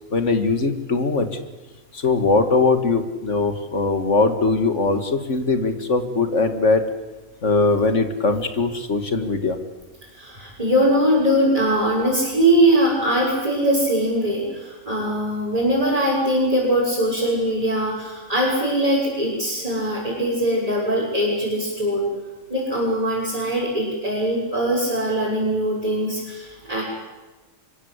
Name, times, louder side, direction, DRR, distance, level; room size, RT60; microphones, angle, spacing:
voice 1, 0.1-1.3 1.9-6.9 7.4-9.6, left 3 dB, 65° left, 8 dB, 2.4 m, -20 dB
voice 2, 10.1-22.1 22.5-26.8, right 1 dB, 30° right, -6 dB, 7.0 m, -21 dB
25.5 x 23.0 x 8.2 m, 1.2 s
omnidirectional pair, 1.3 m